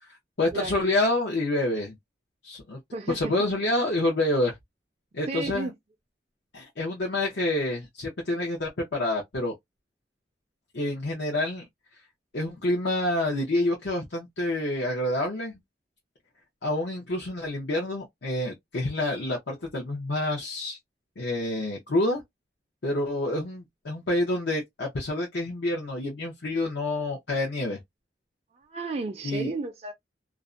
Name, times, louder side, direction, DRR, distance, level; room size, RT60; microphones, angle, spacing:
voice 1, 0.4-2.0 2.4-2.8 3.1-4.5 5.1-5.7 6.5-9.5 10.7-11.6 12.3-15.6 16.6-20.8 21.2-22.2 22.8-27.8 29.2-29.5, left 1 dB, 75° left, 0.7 m, -28 dB
voice 2, 2.9-3.5 5.3-5.7 28.7-29.9, right 3 dB, 35° right, 0.4 m, -33 dB
2.5 x 2.1 x 2.4 m
head